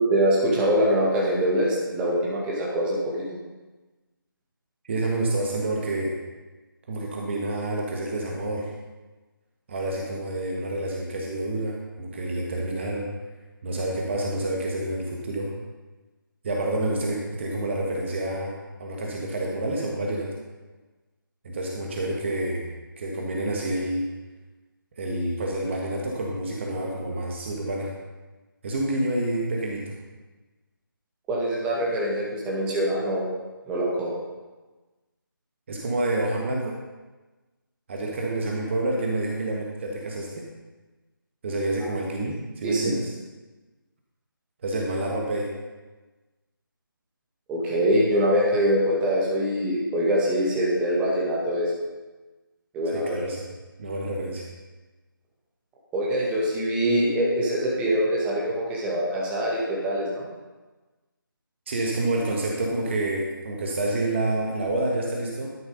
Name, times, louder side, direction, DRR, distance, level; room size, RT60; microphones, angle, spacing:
voice 1, 0.0-3.0 31.3-33.3 33.7-34.2 41.8-41.9 42.6-42.8 47.5-51.7 52.7-53.2 55.9-60.2, equal, 10° right, -6 dB, 1.9 m, -24 dB
voice 2, 4.8-6.1 6.9-8.7 9.7-13.1 13.6-15.5 16.4-18.5 18.8-20.3 21.4-22.6 23.0-24.0 25.0-27.9 28.6-29.9 35.7-36.8 37.9-40.4 41.4-43.1 44.6-45.5 52.9-53.4 53.8-54.4 61.7-65.5, right 1 dB, 30° right, -1 dB, 1.6 m, -28 dB
12.5 x 7.2 x 5.4 m, 1.2 s
figure-of-eight pair, 155°, 12 cm